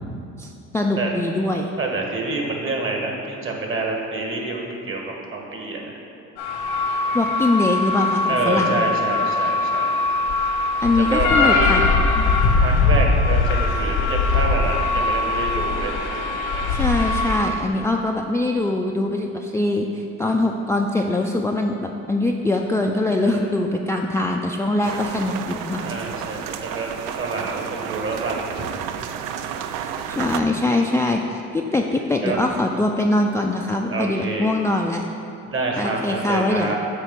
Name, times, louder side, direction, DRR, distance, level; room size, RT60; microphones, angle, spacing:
voice 1, 0.4-1.7 7.1-8.8 10.8-11.8 12.2-12.3 16.4-25.9 29.8-35.1 35.8-36.8, left 2 dB, 10° left, 1 dB, 0.3 m, -23 dB
voice 2, 1.8-6.0 8.3-9.9 11.0-11.5 12.6-16.7 23.2-23.5 25.8-26.9 27.2-28.3 32.2-32.4 33.9-34.5 35.5-36.8, right 3 dB, 40° right, 0 dB, 1.4 m, -27 dB
sound 1, 6.4-17.4, left 3 dB, 80° left, 1.2 m, -21 dB
sound 2, 24.8-30.4, right 8 dB, 70° right, 0.5 m, -31 dB
8.1 x 3.0 x 5.8 m, 2.6 s
supercardioid pair, 70°, 34 cm